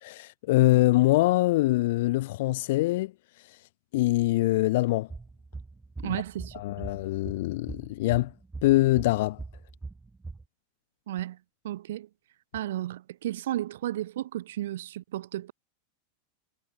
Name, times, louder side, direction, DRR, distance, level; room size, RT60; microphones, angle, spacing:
voice 1, 0.0-3.1 3.4-3.6 3.9-5.1 6.0-6.2 6.5-8.3 8.6-9.4, left 18 dB, 55° left, 1.7 m, -24 dB
sound 1, 5.1-10.4, right 3 dB, 10° right, 1.6 m, -42 dB
voice 2, 6.0-6.9 11.1-11.4 11.6-12.1 12.5-15.5, right 13 dB, 60° right, 2.4 m, -33 dB
figure-of-eight pair, 90°, 0 cm